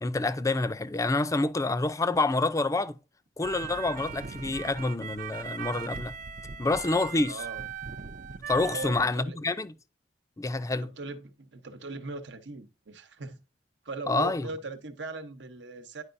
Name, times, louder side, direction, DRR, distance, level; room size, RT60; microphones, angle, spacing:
voice 1, 0.0-3.0 3.4-6.1 6.6-7.4 8.5-9.7 10.4-10.9 14.1-14.5, left 2 dB, 20° left, 0.4 m, -27 dB
sound 1, 3.4-9.1, right 7 dB, 50° right, 0.5 m, -39 dB
voice 2, 7.3-7.6 8.6-9.4 10.8-13.4 13.8-16.0, right 3 dB, 80° right, 1.0 m, -39 dB
9.8 x 4.7 x 2.6 m
head